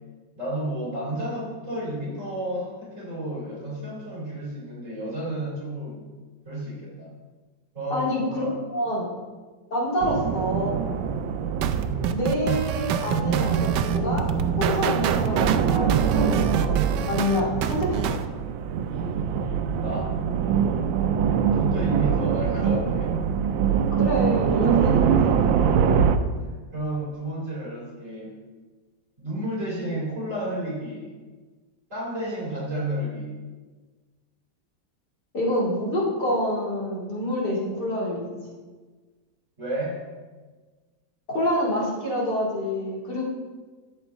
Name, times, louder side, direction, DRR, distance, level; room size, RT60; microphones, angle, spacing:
voice 1, 0.4-6.1 6.4-7.1 7.7-8.5 10.0-10.2 19.8-20.1 21.5-23.1 26.4-28.3 29.2-31.1 31.9-33.3 39.6-40.0, right 1 dB, 40° right, -5 dB, 4.0 m, -31 dB
voice 2, 7.9-8.4 8.7-9.1 9.7-11.0 12.1-14.2 14.5-18.2 24.0-25.6 35.3-38.3 41.3-43.2, left 1 dB, 55° left, -6 dB, 3.1 m, -27 dB
sound 1, 10.0-26.2, right 7 dB, 90° right, 1.4 m, -24 dB
sound 2, 11.6-18.2, right 9 dB, 75° right, 1.2 m, -27 dB
13.0 x 7.9 x 3.6 m, 1.3 s
omnidirectional pair, 2.1 m